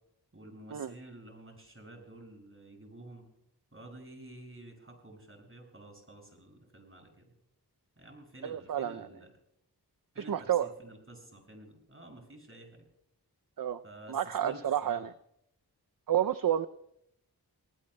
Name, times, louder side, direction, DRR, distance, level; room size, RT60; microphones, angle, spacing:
voice 1, 0.3-3.3 3.7-7.3 8.0-9.3 10.1-12.9 13.8-15.1, right 1 dB, 35° right, 1 dB, 6.4 m, -51 dB
voice 2, 8.4-9.1 10.2-10.7 13.6-13.8 14.1-15.1 16.1-16.7, right 10 dB, 60° right, 12 dB, 0.5 m, -30 dB
29.0 x 19.0 x 2.2 m, 0.77 s
wide cardioid pair, 50°, 39 cm